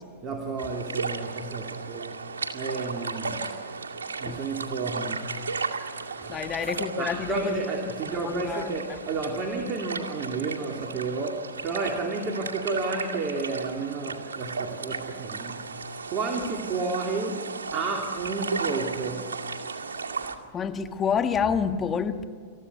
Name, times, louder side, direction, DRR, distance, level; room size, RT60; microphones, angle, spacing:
voice 1, 0.2-2.2 2.5-3.6 4.2-5.5 6.2-6.5 7.0-15.7 16.1-19.4, right 3 dB, 40° right, 2.9 m, -31 dB
sound 1, 0.6-20.3, right 4 dB, 85° right, 2.2 m, -35 dB
voice 2, 6.3-7.6 8.1-9.0 20.5-22.2, left 7 dB, 25° left, 1.7 m, -28 dB
28.0 x 15.0 x 9.6 m
hypercardioid pair, 110°, 0 cm